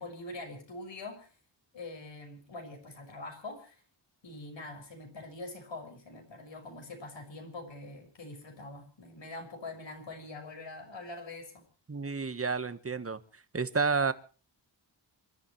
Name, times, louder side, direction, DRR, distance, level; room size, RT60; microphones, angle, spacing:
voice 1, 0.0-1.3 1.7-3.8 4.2-11.6, left 2 dB, 75° left, 4 dB, 6.4 m, -44 dB
voice 2, 11.9-13.2 13.5-14.1, right 4 dB, 30° right, 12 dB, 1.4 m, -30 dB
27.5 x 13.0 x 3.2 m, 0.37 s
wide cardioid pair, 80°, 44 cm